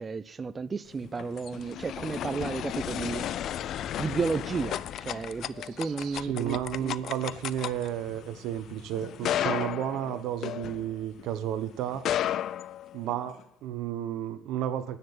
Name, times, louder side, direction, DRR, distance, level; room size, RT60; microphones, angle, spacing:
voice 1, 0.0-3.3 4.0-7.0, right 4 dB, 20° right, 0.6 m, -33 dB
sound 1, 0.9-11.3 11.9-13.4, left 11 dB, 50° left, 0.4 m, -34 dB
voice 2, 5.8-12.1 12.9-15.0, right 10 dB, 65° right, 1.0 m, -32 dB
10.0 x 8.9 x 7.3 m
cardioid pair, 140°, 0 cm